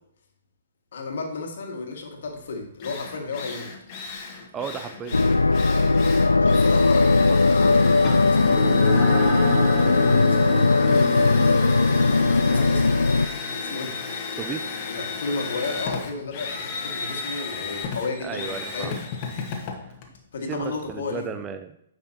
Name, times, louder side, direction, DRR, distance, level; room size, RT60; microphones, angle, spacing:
voice 1, 0.9-3.7 5.7-5.9 6.4-9.3 9.7-11.1 12.3-13.0 13.7-14.0 14.2-14.4 14.9-19.0 20.3-21.3, left 3 dB, 60° left, 2 dB, 1.8 m, -33 dB
Drill, 2.4-2.5 2.8-20.9, left 4 dB, 35° left, 1.5 m, -35 dB
voice 2, 4.5-5.2 7.2-7.4 12.5-12.7 14.4-14.6 18.2-19.0 19.8-20.0 20.5-21.8, right 6 dB, 20° right, 8 dB, 0.5 m, -34 dB
sound 1, 5.1-13.3, left 3 dB, 85° left, 0.3 m, -19 dB
sound 2, 8.0-16.9, left 2 dB, 15° left, 2.4 m, -30 dB
9.6 x 6.0 x 2.9 m, 0.73 s
figure-of-eight pair, 125°, 0 cm